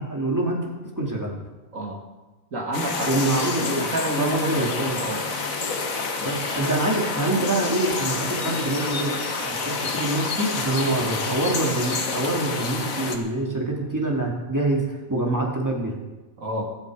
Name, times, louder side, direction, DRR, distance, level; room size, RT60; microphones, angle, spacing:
voice 1, 0.0-1.3 3.1-3.8 4.2-5.0 6.2-9.2 9.4-14.8 15.1-16.0, right 2 dB, 10° right, -2 dB, 2.9 m, -25 dB
voice 2, 2.5-3.1 3.7-5.2 16.4-16.7, right 1 dB, 65° right, 1 dB, 2.6 m, -29 dB
sound 1, 2.7-13.2, left 4 dB, 70° left, 1.8 m, -28 dB
23.5 x 8.0 x 5.1 m, 1.2 s
omnidirectional pair, 1.5 m